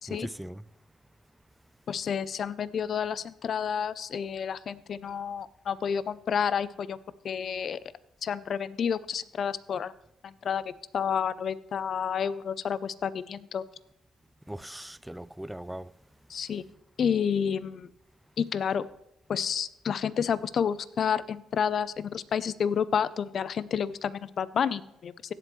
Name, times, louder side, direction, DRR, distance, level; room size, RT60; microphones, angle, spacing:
voice 1, 0.1-0.6 14.5-15.9, right 1 dB, 5° right, 0.3 m, -39 dB
voice 2, 1.9-7.0 7.2-7.8 8.2-9.9 10.2-13.6 16.3-16.6 17.0-17.9 18.4-18.9 19.3-25.1, left 7 dB, 55° left, 0.5 m, -30 dB
16.5 x 7.7 x 3.1 m
cardioid pair, 90°, 0 cm